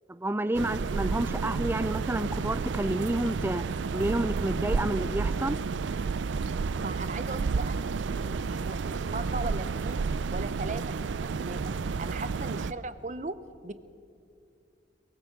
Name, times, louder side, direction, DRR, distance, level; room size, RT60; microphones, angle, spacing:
voice 1, 0.1-5.6, right 1 dB, 10° right, 15 dB, 0.4 m, -30 dB
sound 1, 0.5-12.7, right 4 dB, 80° right, 0.4 m, -31 dB
voice 2, 6.8-10.0 10.3-11.1 11.4-13.4 13.6-13.7, right 3 dB, 40° right, 13 dB, 0.7 m, -38 dB
22.5 x 18.5 x 6.7 m, 2.5 s
head